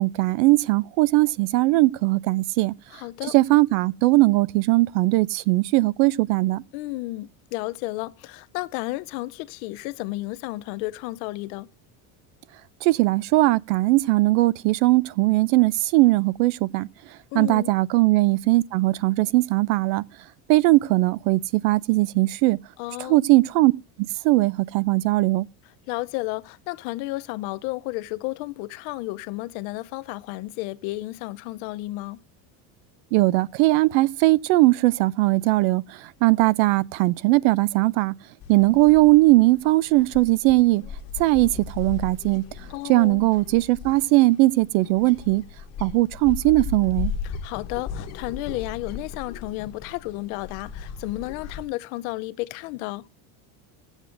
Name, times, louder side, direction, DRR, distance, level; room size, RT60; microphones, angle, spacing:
voice 1, 0.0-2.7 3.3-6.6 12.8-16.9 17.3-20.0 20.5-22.6 23.1-23.7 24.2-25.5 33.1-38.1 38.5-40.8 41.2-42.4 42.9-45.4 45.8-47.1, right 20 dB, 80° right, 0.6 m, -19 dB
voice 2, 2.9-3.3 6.7-11.7 17.3-17.7 22.8-23.3 25.9-32.2 42.7-43.2 47.2-53.1, left 19 dB, 80° left, 0.7 m, -32 dB
sound 1, 38.4-51.6, left 6 dB, 35° left, 1.0 m, -37 dB
17.0 x 8.1 x 2.5 m
cardioid pair, 170°, 42 cm